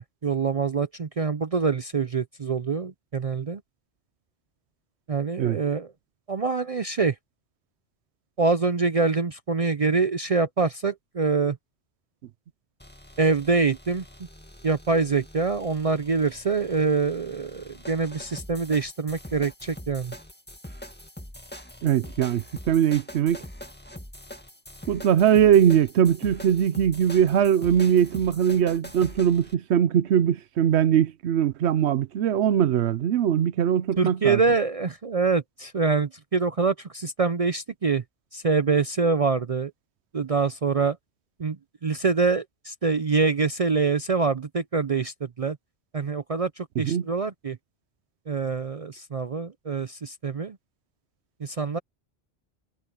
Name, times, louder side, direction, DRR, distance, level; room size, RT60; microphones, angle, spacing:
voice 1, 0.0-3.6 5.1-5.9 6.3-7.2 8.4-11.6 13.2-14.0 14.6-20.1 34.0-38.0 38.3-39.7 40.1-41.0 41.4-45.6 45.9-47.6 48.3-50.6 51.4-51.8, right 4 dB, 40° right, 0.6 m, -25 dB
sound 1, 12.8-29.6, left 1 dB, 10° left, 2.0 m, -44 dB
voice 2, 21.8-23.4 24.9-34.4 46.9-47.0, right 9 dB, 85° right, 0.9 m, -21 dB
omnidirectional pair, 1.1 m